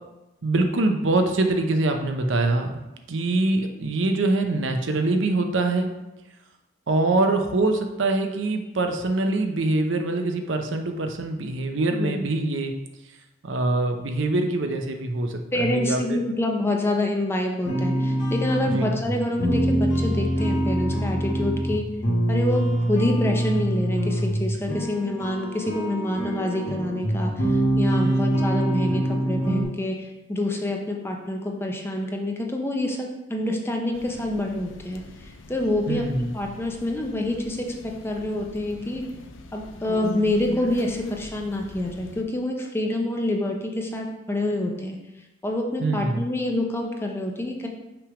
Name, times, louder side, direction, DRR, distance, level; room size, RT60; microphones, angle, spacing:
voice 1, 0.4-2.8 3.1-6.0 6.9-12.7 13.4-16.2 18.7-18.9 28.0-28.3 35.9-36.3 45.8-46.3, right 2 dB, 75° right, 5 dB, 0.7 m, -24 dB
voice 2, 11.9-12.3 15.5-21.8 22.3-39.0 39.5-45.0 45.4-47.7, left 1 dB, 10° left, 1 dB, 0.6 m, -27 dB
sound 1, 17.6-29.6, right 1 dB, 65° left, 1.4 m, -24 dB
sound 2, 33.9-42.2, left 4 dB, 85° left, 0.5 m, -41 dB
5.9 x 3.4 x 4.9 m, 0.99 s
head